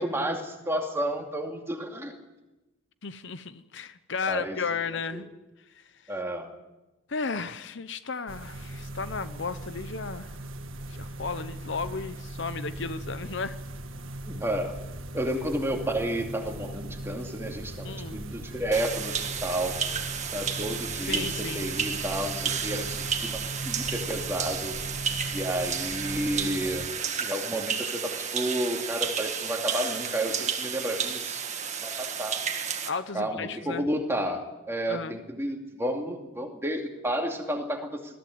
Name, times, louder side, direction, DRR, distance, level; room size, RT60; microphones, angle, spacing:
voice 1, 0.0-2.1 4.3-4.6 5.1-5.3 6.1-6.5 14.2-14.8 15.1-19.8 20.3-24.7 25.3-26.9 27.2-31.4 31.8-32.4 33.1-38.2, right 1 dB, 15° right, 2 dB, 2.5 m, -31 dB
voice 2, 3.0-5.3 5.7-6.1 7.1-10.4 10.9-13.6 17.8-18.2 21.0-21.7 32.8-33.9 34.9-35.2, left 4 dB, 60° left, 12 dB, 0.8 m, -34 dB
sound 1, 8.3-26.9, right 1 dB, 80° right, 1.6 m, -39 dB
sound 2, 18.7-32.9, right 7 dB, 35° right, 1.8 m, -32 dB
21.0 x 14.5 x 9.5 m, 1.0 s
head